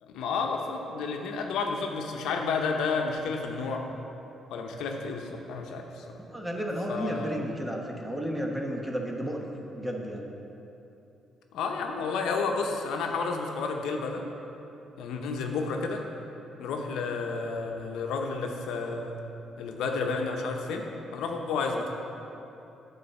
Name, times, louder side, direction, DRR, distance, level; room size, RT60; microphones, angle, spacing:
voice 1, 0.0-3.9 4.5-6.1 6.9-7.4 11.5-14.2 15.0-16.0 16.6-19.1 19.6-21.9, left 4 dB, 85° left, 2 dB, 0.7 m, -31 dB
voice 2, 6.2-9.4 9.7-10.3, equal, 5° right, 0 dB, 1.1 m, -32 dB
9.4 x 3.9 x 6.9 m, 2.9 s
cardioid pair, 90°, 0 cm